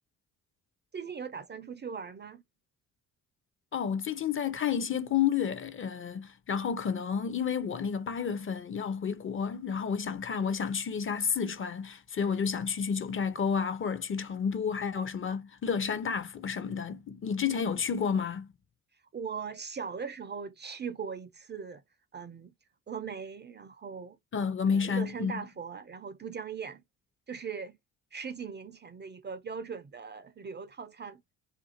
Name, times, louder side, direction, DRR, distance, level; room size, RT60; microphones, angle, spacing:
voice 1, 0.9-2.4 19.1-21.8 22.1-22.5 22.9-24.2 24.7-26.8 27.3-27.8 28.1-31.2, right 6 dB, 30° right, 0.5 m, -39 dB
voice 2, 3.7-18.5 24.3-25.4, left 7 dB, 30° left, 0.6 m, -31 dB
2.6 x 2.4 x 2.7 m
hypercardioid pair, 45°, 39 cm